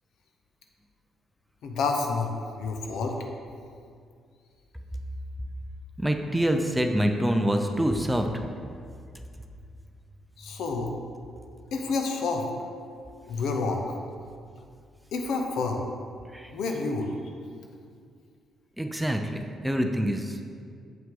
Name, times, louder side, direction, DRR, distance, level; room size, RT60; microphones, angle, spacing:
voice 1, 1.6-2.3 2.6-3.2 10.4-10.9 11.7-12.5 13.3-13.8 15.1-15.8 16.5-17.1, left 4 dB, 80° left, 3 dB, 0.8 m, -28 dB
voice 2, 6.0-8.3 16.3-16.5 18.8-20.3, equal, 5° right, 4 dB, 0.5 m, -26 dB
7.4 x 5.7 x 3.8 m, 2.3 s
cardioid pair, 90°, 0 cm